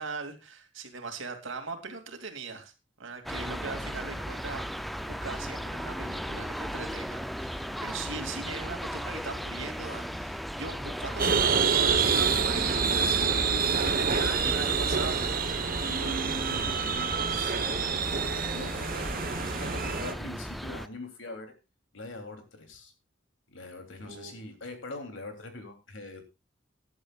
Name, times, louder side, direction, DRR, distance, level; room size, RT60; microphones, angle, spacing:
voice 1, 0.0-2.7 3.0-13.4 13.7-15.2 24.0-24.4, right 4 dB, 90° right, 2.7 m, -40 dB
sound 1, 3.3-20.9, equal, ahead, 0.5 m, -37 dB
sound 2, 11.2-20.1, right 5 dB, 45° right, 1.2 m, -27 dB
voice 2, 15.8-17.9 18.2-21.5 21.9-22.9 23.5-26.2, left 2 dB, 80° left, 3.1 m, -43 dB
19.0 x 11.0 x 2.4 m
head